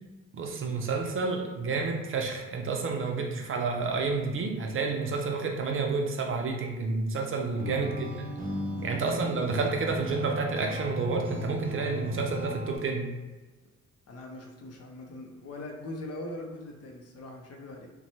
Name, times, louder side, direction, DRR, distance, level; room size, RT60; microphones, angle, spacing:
voice 1, 0.3-8.1 8.8-13.1, right 4 dB, 45° right, 2 dB, 0.5 m, -30 dB
voice 2, 7.5-7.9 8.7-9.0 14.1-17.9, left 1 dB, 55° left, 1 dB, 0.6 m, -41 dB
sound 1, 7.6-12.8, left 1 dB, 20° right, 1.1 m, -36 dB
2.9 x 2.2 x 2.7 m, 1.2 s
cardioid pair, 90°, 30 cm